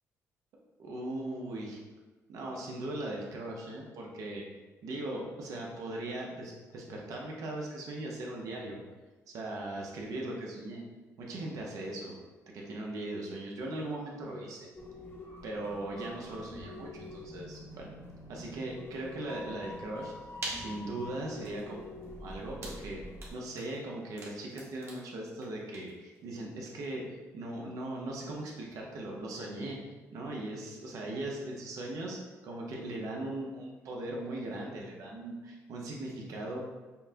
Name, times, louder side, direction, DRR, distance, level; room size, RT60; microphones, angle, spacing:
voice 1, 0.8-1.8 2.3-4.4 4.8-8.8 9.3-10.8 11.2-12.2 12.5-14.7 15.4-17.9 18.3-20.1 20.5-23.0 23.3-29.8 30.1-32.2 32.4-36.6, right 1 dB, 75° right, -1 dB, 0.9 m, -39 dB
sound 1, 14.7-23.3, left 1 dB, 45° left, 0.8 m, -46 dB
sound 2, 20.0-27.0, right 1 dB, 45° right, 1.2 m, -47 dB
5.6 x 2.2 x 2.8 m, 1.2 s
cardioid pair, 100°, 6 cm